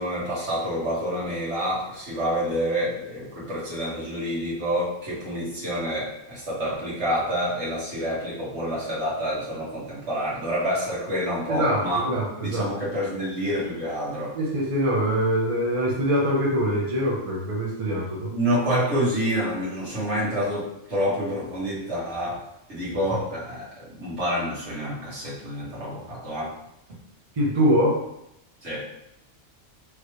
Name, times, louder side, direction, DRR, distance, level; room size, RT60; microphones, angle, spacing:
voice 1, 0.0-12.1 12.4-14.4 18.3-26.5 28.6-28.9, equal, 60° right, -8 dB, 1.8 m, -28 dB
voice 2, 11.5-12.7 14.3-18.3 27.4-28.0, equal, 30° right, -4 dB, 0.8 m, -23 dB
4.8 x 3.1 x 3.1 m, 0.83 s
omnidirectional pair, 1.3 m